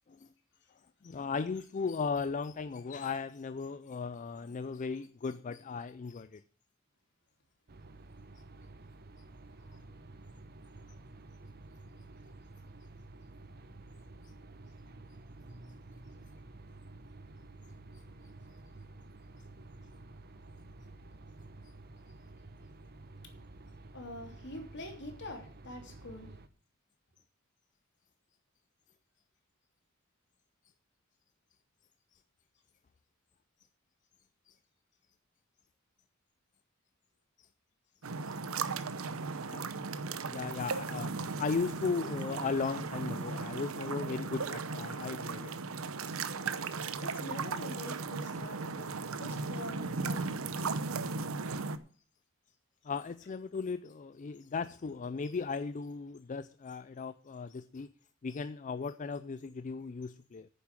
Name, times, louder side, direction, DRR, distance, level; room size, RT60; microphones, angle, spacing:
voice 1, 1.0-6.4 9.7-9.8 34.5-34.6 37.4-37.5 38.3-38.4 39.5-45.5 52.8-57.9 58.2-60.5, left 5 dB, 40° left, 0.4 m, -37 dB
sound 1, 7.7-26.5, right 2 dB, 50° right, 0.9 m, -51 dB
voice 2, 23.9-26.3 39.9-40.0 47.0-50.5, left 1 dB, 60° left, 3.1 m, -45 dB
sound 2, 38.0-51.8, right 4 dB, 85° right, 0.8 m, -36 dB
9.6 x 7.2 x 7.4 m
head